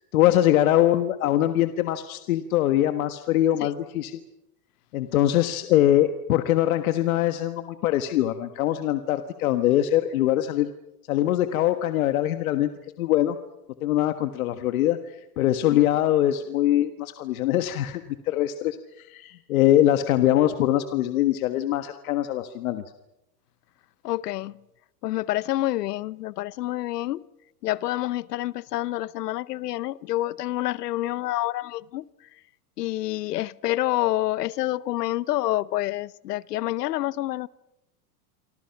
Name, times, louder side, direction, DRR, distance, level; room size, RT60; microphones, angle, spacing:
voice 1, 0.1-4.1 4.9-10.7 11.1-12.7 13.0-13.4 13.8-22.8, left 13 dB, 65° left, 1.6 m, -23 dB
voice 2, 24.0-24.6 25.0-27.2 27.6-32.1 32.8-37.5, left 15 dB, 90° left, 1.0 m, -28 dB
28.5 x 25.5 x 5.9 m
supercardioid pair, 170°, 46 cm